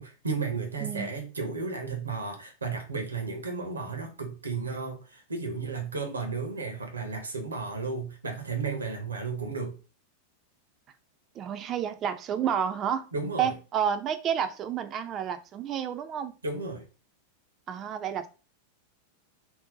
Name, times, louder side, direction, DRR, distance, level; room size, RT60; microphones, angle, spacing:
voice 1, 0.0-9.8 13.1-13.5 16.4-16.9, right 4 dB, 75° right, 0.7 m, -33 dB
voice 2, 0.8-1.1 11.4-13.1 13.4-16.3 17.7-18.3, right 8 dB, 30° right, 0.4 m, -30 dB
2.7 x 2.1 x 3.9 m
figure-of-eight pair, 90°, 0 cm